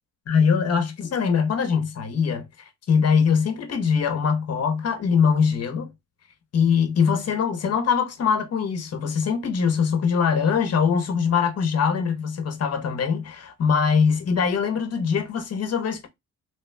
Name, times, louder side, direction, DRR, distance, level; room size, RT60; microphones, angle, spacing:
voice 1, 0.3-5.9 6.5-16.1, left 6 dB, 55° left, 1.1 m, -22 dB
3.1 x 3.1 x 3.3 m
cardioid pair, 90°, 30 cm